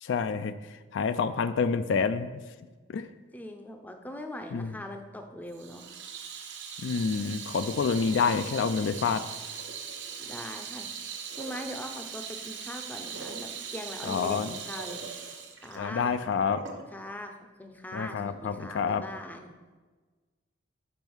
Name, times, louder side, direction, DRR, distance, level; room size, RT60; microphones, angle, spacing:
voice 1, 0.0-0.5 0.9-2.4 2.9-3.1 4.5-4.7 6.8-9.2 14.1-14.5 15.8-16.6 17.9-19.0, left 5 dB, 70° left, 11 dB, 0.3 m, -28 dB
voice 2, 3.3-5.9 10.2-10.9 11.4-15.0 15.6-16.2 16.9-17.3 17.6-19.5, left 1 dB, 10° left, 5 dB, 0.5 m, -41 dB
Water tap faucet / Sink (filling or washing), 5.5-16.9, right 6 dB, 65° right, 0.8 m, -40 dB
5.3 x 5.3 x 6.1 m, 1.3 s
head